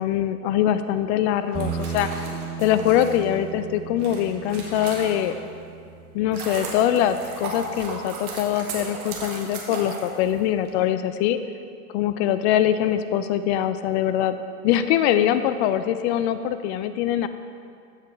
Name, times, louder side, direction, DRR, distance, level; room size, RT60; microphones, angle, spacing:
voice 1, 0.0-2.1 2.6-5.4 6.1-11.4 11.9-14.4 14.6-17.3, left 11 dB, 50° left, 11 dB, 0.5 m, -23 dB
sound 1, 1.4-5.5 6.0-10.7, right 3 dB, 70° right, 1.9 m, -36 dB
Bass guitar, 1.5-7.8, right 6 dB, 15° right, 1.2 m, -36 dB
14.5 x 4.8 x 3.5 m, 2.3 s
hypercardioid pair, 105°, 46 cm